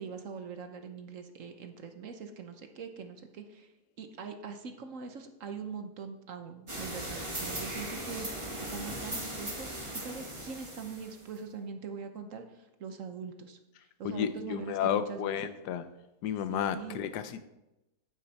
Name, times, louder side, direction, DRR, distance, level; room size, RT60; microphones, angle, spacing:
voice 1, 0.0-3.7 4.0-9.7 9.9-13.6 14.0-15.4 16.5-17.0, right 5 dB, 55° right, 6 dB, 1.1 m, -42 dB
sound 1, 6.7-11.4, right 1 dB, 20° right, 1.6 m, -38 dB
voice 2, 14.0-15.9 16.2-17.5, left 9 dB, 85° left, 11 dB, 1.3 m, -32 dB
8.8 x 8.8 x 4.2 m, 0.94 s
omnidirectional pair, 1.7 m